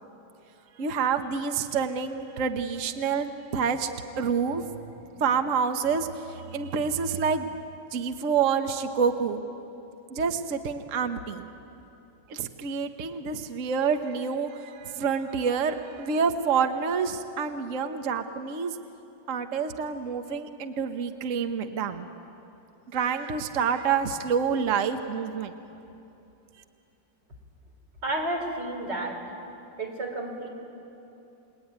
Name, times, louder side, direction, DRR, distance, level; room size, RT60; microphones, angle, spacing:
voice 1, 0.8-3.9 4.2-4.7 5.2-7.5 7.9-9.4 10.1-11.5 12.3-18.8 19.3-22.1 22.9-25.5, right 6 dB, 50° right, 7 dB, 1.3 m, -27 dB
voice 2, 28.0-29.2 29.8-30.5, right 1 dB, 70° right, 1 dB, 4.6 m, -31 dB
29.5 x 21.0 x 9.4 m, 2.9 s
omnidirectional pair, 2.0 m